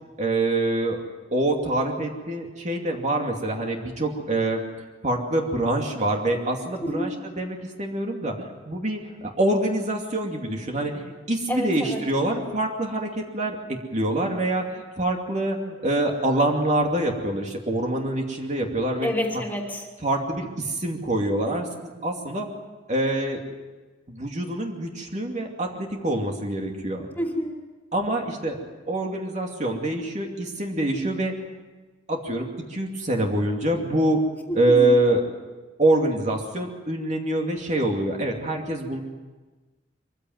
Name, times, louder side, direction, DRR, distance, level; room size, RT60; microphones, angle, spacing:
voice 1, 0.2-1.0 1.3-4.6 5.0-13.6 13.9-19.1 20.0-22.5 22.9-23.4 24.1-27.1 27.9-28.6 28.9-31.3 32.1-34.2 34.6-35.2 35.8-39.0, right 1 dB, 40° right, 1 dB, 2.6 m, -25 dB
voice 2, 6.8-7.1 11.5-12.0 19.0-19.9 27.2-27.5 34.5-34.8, equal, 10° left, 1 dB, 3.0 m, -28 dB
24.0 x 15.5 x 9.4 m, 1.3 s
head